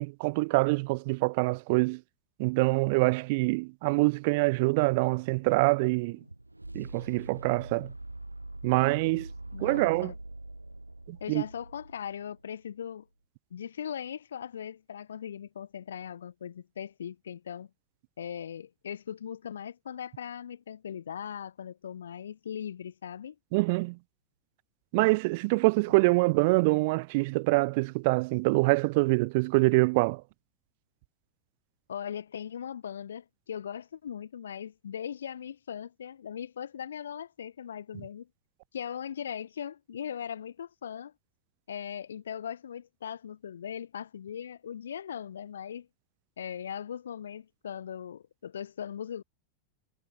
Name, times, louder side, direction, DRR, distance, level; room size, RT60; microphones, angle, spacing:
voice 1, 0.0-2.0 2.4-6.2 6.7-7.9 8.6-9.3 9.6-10.1 11.1-11.4 23.5-24.0 24.9-30.2, right 26 dB, 50° right, 0.3 m, -25 dB
sound 1, 5.2-12.5, right 2 dB, 85° right, 1.9 m, -44 dB
voice 2, 9.5-10.1 11.2-13.1 13.5-17.7 18.2-23.3 31.9-38.3 38.7-41.1 41.7-45.9 46.4-49.2, left 8 dB, 65° left, 3.2 m, -39 dB
figure-of-eight pair, 90°, 0 cm